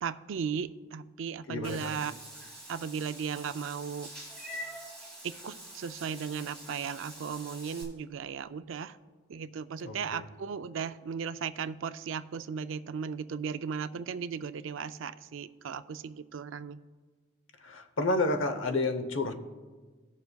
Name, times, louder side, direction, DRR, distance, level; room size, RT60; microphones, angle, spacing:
voice 1, 0.0-2.2 2.7-4.1 5.2-9.0 9.3-16.8, right 6 dB, 80° right, 12 dB, 0.4 m, -36 dB
voice 2, 1.5-1.9 9.8-10.2 17.6-19.3, left 2 dB, 85° left, 8 dB, 0.8 m, -30 dB
Meow / Water / Bathtub (filling or washing), 1.6-7.8, right 1 dB, 5° left, 2.6 m, -45 dB
18.5 x 6.9 x 2.3 m, 1.4 s
head